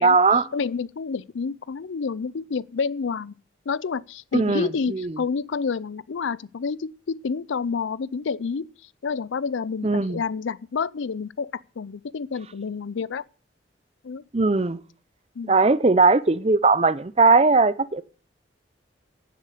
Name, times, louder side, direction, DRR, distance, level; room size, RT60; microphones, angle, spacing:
voice 1, 0.0-0.5 4.3-5.2 9.8-10.2 14.3-14.8 15.5-18.0, right 3 dB, 30° right, 0.5 m, -19 dB
voice 2, 0.5-3.3 3.7-8.7 9.0-13.2 14.0-14.2 15.4-15.6, left 5 dB, 75° left, 0.5 m, -29 dB
10.5 x 7.6 x 8.3 m
head